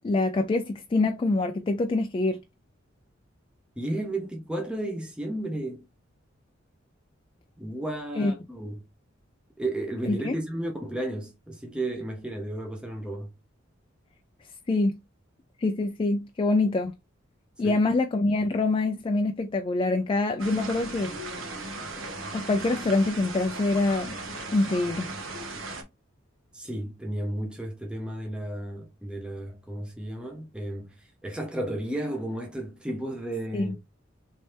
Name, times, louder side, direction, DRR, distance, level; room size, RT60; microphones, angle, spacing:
voice 1, 0.0-2.4 8.2-8.3 10.1-10.4 14.7-15.0 15.6-16.9 17.6-21.1 22.3-24.2 24.5-25.1 33.5-33.7, left 2 dB, 25° left, 0.4 m, -25 dB
voice 2, 3.8-5.9 7.6-8.8 9.6-13.3 17.6-17.8 26.5-33.8, right 1 dB, 5° right, 0.7 m, -33 dB
sound 1, 20.4-25.8, right 2 dB, 85° right, 1.3 m, -37 dB
4.1 x 3.2 x 3.3 m
head